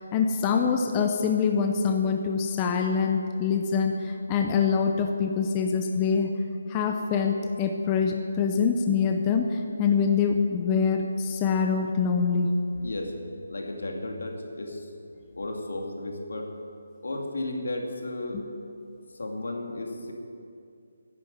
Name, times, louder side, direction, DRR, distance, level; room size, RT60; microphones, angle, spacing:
voice 1, 0.0-6.3 6.7-12.5, left 6 dB, 15° left, 4 dB, 0.5 m, -25 dB
voice 2, 12.7-13.1 13.5-16.5 17.0-18.4 19.1-20.1, left 2 dB, 85° left, 2 dB, 2.5 m, -34 dB
11.0 x 9.3 x 9.2 m, 2.5 s
hypercardioid pair, 175°, 0 cm